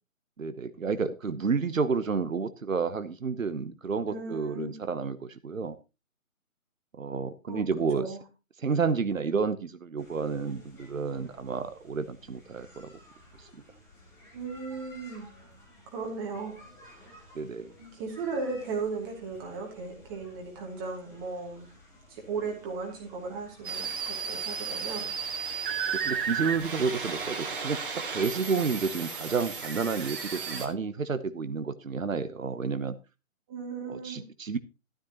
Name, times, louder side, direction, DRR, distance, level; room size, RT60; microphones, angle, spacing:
voice 1, 0.4-5.8 7.0-8.1 8.6-12.9 13.4-13.5 17.3-17.7 25.9-32.9 33.9-34.6, right 5 dB, 70° right, 12 dB, 1.0 m, -30 dB
voice 2, 4.1-4.8 7.5-7.7 7.9-8.2 14.3-15.3 15.9-16.6 16.8-17.3 17.8-21.7 22.1-25.1 33.5-34.2, right 4 dB, 15° right, 0 dB, 2.6 m, -36 dB
sound 1, 10.0-27.3, left 1 dB, 5° left, 2.7 m, -55 dB
sound 2, 23.6-30.7, right 6 dB, 40° right, 2.3 m, -34 dB
12.5 x 12.0 x 2.9 m, 0.28 s
figure-of-eight pair, 150°, 42 cm